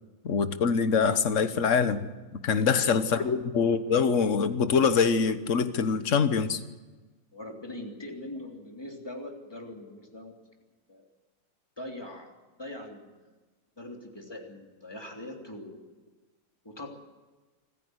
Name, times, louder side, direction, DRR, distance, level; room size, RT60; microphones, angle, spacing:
voice 1, 0.2-2.1 2.4-6.6, left 6 dB, 45° left, 11 dB, 1.4 m, -24 dB
voice 2, 2.5-3.3 7.3-10.3 10.9-11.1 11.8-13.3 13.8-15.8 16.6-16.9, left 1 dB, 10° left, 1 dB, 3.4 m, -42 dB
26.0 x 15.5 x 8.1 m, 1.3 s
omnidirectional pair, 2.0 m